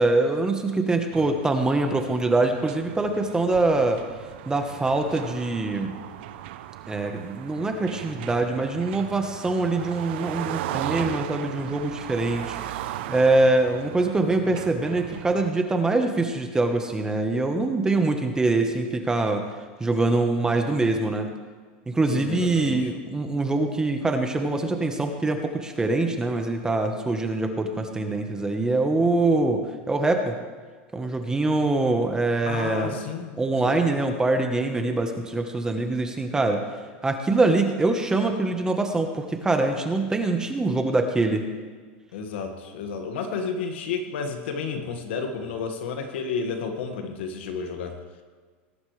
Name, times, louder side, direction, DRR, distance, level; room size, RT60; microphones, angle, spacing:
voice 1, 0.0-4.0 4.5-5.9 6.9-12.8 13.1-19.4 19.8-21.3 21.9-30.4 30.9-32.9 33.4-36.6 37.0-41.4, right 2 dB, 10° right, 5 dB, 1.2 m, -24 dB
sound 1, 1.1-15.5, right 12 dB, 70° right, 0.7 m, -37 dB
voice 2, 22.1-22.9 32.5-33.3 33.6-33.8 42.1-48.0, left 5 dB, 80° left, 5 dB, 1.9 m, -31 dB
19.5 x 11.5 x 3.4 m, 1.5 s
supercardioid pair, 135°, 6 cm